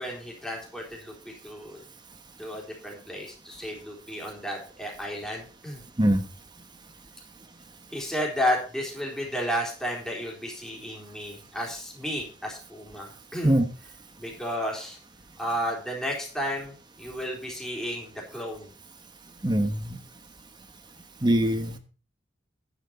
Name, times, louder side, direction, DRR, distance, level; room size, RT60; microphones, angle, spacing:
voice 1, 0.0-1.8 2.4-5.8 7.9-13.6 14.2-15.0 15.4-18.7, equal, 5° left, -2 dB, 3.8 m, -32 dB
voice 2, 19.4-20.0 21.2-21.8, right 1 dB, 25° right, 8 dB, 1.1 m, -22 dB
11.5 x 9.3 x 4.3 m, 0.37 s
head